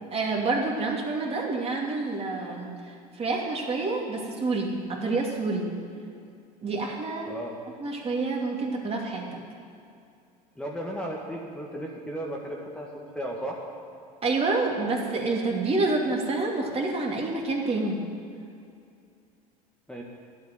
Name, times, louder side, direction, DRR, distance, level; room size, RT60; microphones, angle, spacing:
voice 1, 0.1-5.7 6.6-7.3 7.8-9.3 14.2-18.0, right 3 dB, 30° right, -1 dB, 2.8 m, -28 dB
voice 2, 10.6-13.6 19.9-20.0, right 1 dB, 5° left, -3 dB, 1.8 m, -35 dB
11.5 x 8.4 x 9.2 m, 2.5 s
hypercardioid pair, 85°, 20 cm